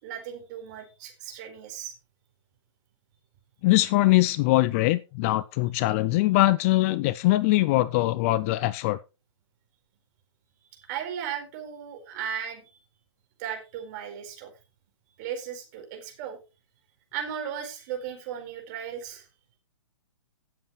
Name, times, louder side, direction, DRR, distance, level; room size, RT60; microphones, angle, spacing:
voice 1, 0.0-1.9 10.7-12.6 13.4-14.5 15.2-16.4 17.1-19.3, right 8 dB, 35° right, 4.4 m, -36 dB
voice 2, 3.6-9.0, left 18 dB, 30° left, 0.4 m, -22 dB
17.5 x 7.8 x 3.1 m
figure-of-eight pair, 120°, 16 cm